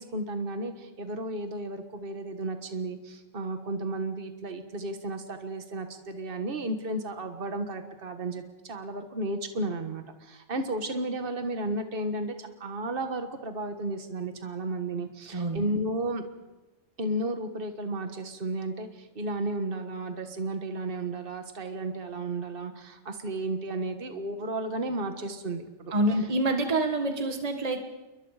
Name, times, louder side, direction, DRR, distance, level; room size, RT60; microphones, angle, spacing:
voice 1, 0.0-16.2 17.0-25.9, right 2 dB, 50° right, 6 dB, 1.7 m, -33 dB
voice 2, 15.3-15.6 25.9-27.9, right 1 dB, 35° right, 5 dB, 1.7 m, -27 dB
29.0 x 23.0 x 5.0 m, 1.1 s
omnidirectional pair, 1.2 m